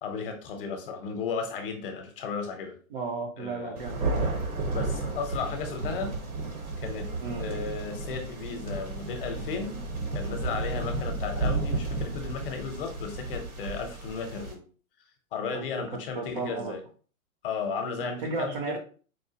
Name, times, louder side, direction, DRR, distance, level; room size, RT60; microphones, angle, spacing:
voice 1, 0.0-2.8 3.4-3.8 4.7-6.1 6.8-7.1 7.4-9.8 10.1-14.6 15.3-16.8 17.4-18.8, left 5 dB, 40° left, 5 dB, 0.7 m, -34 dB
voice 2, 2.9-4.0 7.2-7.4 15.5-15.7 16.2-16.8 18.0-18.8, right 4 dB, 35° right, 5 dB, 0.6 m, -34 dB
Thunder, 3.8-14.5, right 2 dB, 85° right, 1.3 m, -32 dB
4.5 x 2.4 x 2.8 m, 0.40 s
hypercardioid pair, 135°, 43 cm